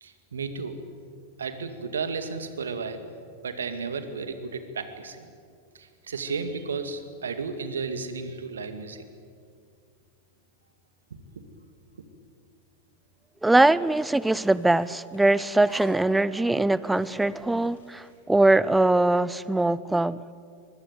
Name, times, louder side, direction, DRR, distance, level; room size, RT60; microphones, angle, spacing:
voice 1, 0.0-0.8 1.4-3.0 3.4-5.3 5.7-9.0 11.4-11.5, right 4 dB, 70° right, 2.3 m, -33 dB
voice 2, 13.4-20.2, right 2 dB, 5° right, 0.6 m, -22 dB
sound 1, 13.9-16.4 16.8-19.1, left 2 dB, 65° left, 6.7 m, -57 dB
23.5 x 21.5 x 8.3 m
figure-of-eight pair, 90°, 0 cm